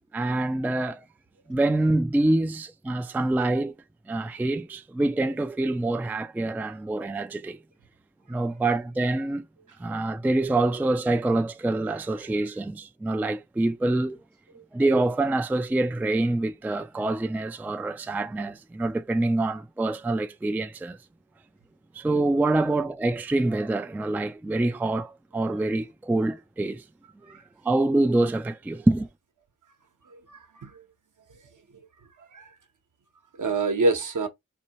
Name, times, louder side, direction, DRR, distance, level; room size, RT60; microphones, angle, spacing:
voice 1, 0.1-1.0 1.5-3.7 4.1-7.6 8.3-9.5 9.8-14.2 14.7-21.0 21.9-26.8 27.6-29.1, right 2 dB, 5° right, 0.3 m, -26 dB
voice 2, 30.1-30.8 32.3-32.5 33.4-34.3, right 3 dB, 60° right, 0.9 m, -27 dB
4.3 x 2.2 x 2.8 m
cardioid pair, 50°, 34 cm